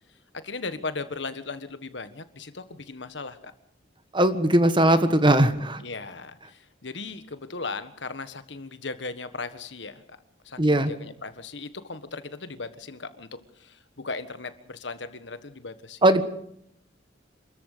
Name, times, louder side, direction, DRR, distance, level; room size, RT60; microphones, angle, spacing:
voice 1, 0.3-3.5 5.8-10.0 10.4-13.3 13.6-16.2, left 3 dB, 70° left, 11 dB, 1.5 m, -37 dB
voice 2, 4.1-5.8 10.6-10.9 16.0-16.2, right 1 dB, 25° right, 11 dB, 1.5 m, -19 dB
27.5 x 14.0 x 6.8 m, 0.73 s
head